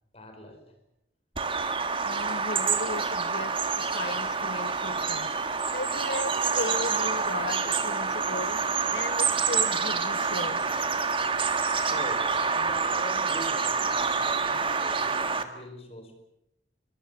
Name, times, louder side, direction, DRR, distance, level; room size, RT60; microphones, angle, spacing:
voice 1, 0.1-0.7 11.9-16.2, equal, 35° left, 6 dB, 4.8 m, -43 dB
Bird vocalization bird call bird song, 1.4-15.4, right 5 dB, 30° right, 1.7 m, -27 dB
voice 2, 2.0-5.3 5.7-8.6 8.9-10.7, left 3 dB, 70° left, 13 dB, 1.4 m, -36 dB
23.0 x 22.5 x 8.0 m, 0.81 s
head